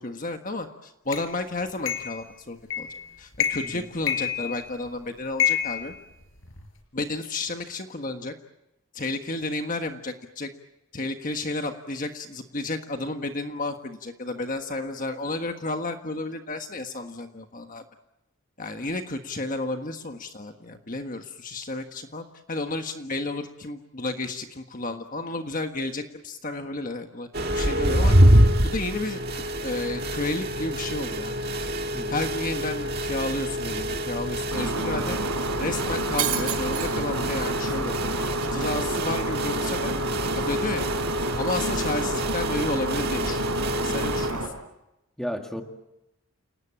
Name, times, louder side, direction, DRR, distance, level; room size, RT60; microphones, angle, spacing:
voice 1, 0.0-2.9 3.2-5.9 6.9-8.3 8.9-10.5 10.9-17.8 18.6-27.3 27.5-31.4 31.6-31.7 32.1-35.2 35.6-39.9 40.3-40.9 41.4-44.5, left 2 dB, 40° left, 5 dB, 1.5 m, -32 dB
sound 1, 1.1-1.3 1.9-2.2 2.7-3.0 3.3-3.8 4.1-4.9 5.4-6.6, left 9 dB, 60° left, 5.1 m, -27 dB
sound 2, 27.3-44.3, equal, 45° right, 1.8 m, -26 dB
Shatter, 34.5-44.5, right 3 dB, 85° right, 5.5 m, -30 dB
voice 2, 45.2-45.6, equal, ahead, 3 dB, 2.1 m, -33 dB
29.0 x 19.0 x 8.9 m, 0.92 s
head